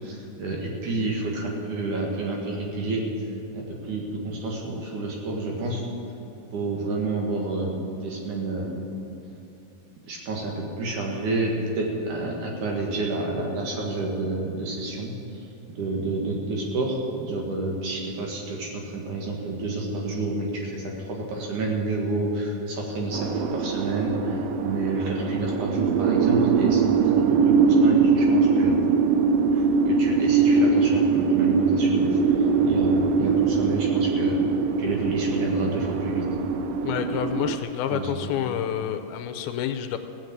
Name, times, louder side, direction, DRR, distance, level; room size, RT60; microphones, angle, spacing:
voice 1, 0.0-3.1 3.5-5.8 6.5-8.8 10.0-28.8 29.5-34.4 34.8-36.3 37.9-38.3, right 2 dB, 60° right, -1 dB, 2.9 m, -29 dB
sound 1, 23.1-37.6, right 5 dB, 85° right, 1.9 m, -22 dB
voice 2, 36.8-40.0, left 10 dB, 85° left, 8 dB, 2.5 m, -28 dB
16.0 x 7.9 x 7.9 m, 2.7 s
omnidirectional pair, 4.5 m